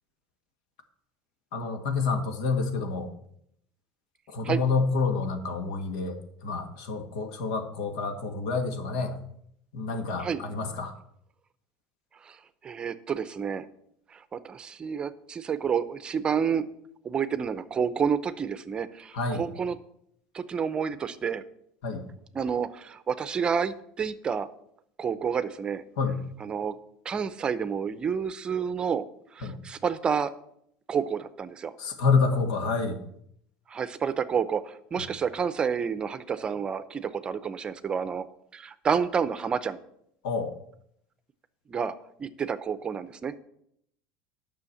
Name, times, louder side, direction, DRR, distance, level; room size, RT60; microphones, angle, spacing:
voice 1, 1.5-3.1 4.3-9.1 9.7-10.9 19.1-19.5 21.8-22.0 26.0-26.2 29.4-29.6 31.8-33.0 35.0-35.1 40.2-40.5, left 4 dB, 85° left, 6 dB, 1.7 m, -28 dB
voice 2, 12.6-13.7 14.1-16.7 17.0-19.7 20.3-21.4 22.3-24.5 25.0-25.8 26.4-26.8 27.0-29.0 29.3-30.3 30.9-31.7 33.7-38.2 38.5-39.8 41.7-43.3, right 6 dB, 25° right, 14 dB, 0.6 m, -29 dB
9.7 x 6.3 x 7.2 m, 0.72 s
supercardioid pair, 125°, 4 cm